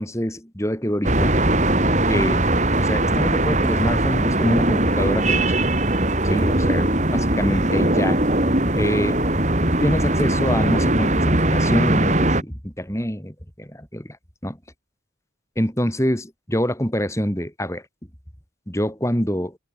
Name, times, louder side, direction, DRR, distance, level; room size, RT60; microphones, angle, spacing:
voice 1, 0.0-1.4 2.1-2.5 2.8-5.5 6.2-8.2 8.7-9.3 9.8-14.2 14.4-14.6 15.6-17.8 18.7-19.6, equal, 15° left, 4.2 m, -25 dB
sound 1, 1.0-12.4, right 1 dB, 40° right, 3.9 m, -20 dB
head